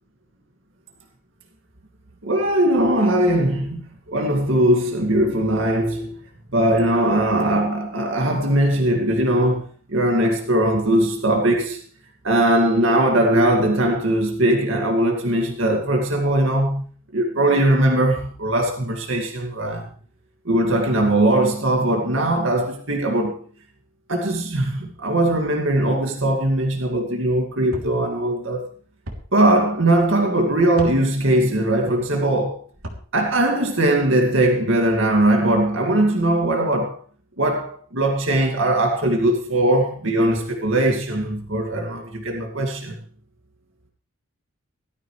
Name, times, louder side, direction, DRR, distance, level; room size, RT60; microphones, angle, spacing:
voice 1, 2.2-3.8 4.1-6.1 6.5-11.8 12.2-16.8 17.1-19.9 20.5-23.4 24.1-28.7 29.3-32.6 33.1-37.0 37.4-43.0, right 1 dB, 60° right, 2.3 m, -20 dB
sound 1, 27.7-27.9 29.0-29.2 30.7-30.9 32.7-33.0, equal, 80° right, 3.3 m, -34 dB
18.5 x 13.5 x 3.4 m
head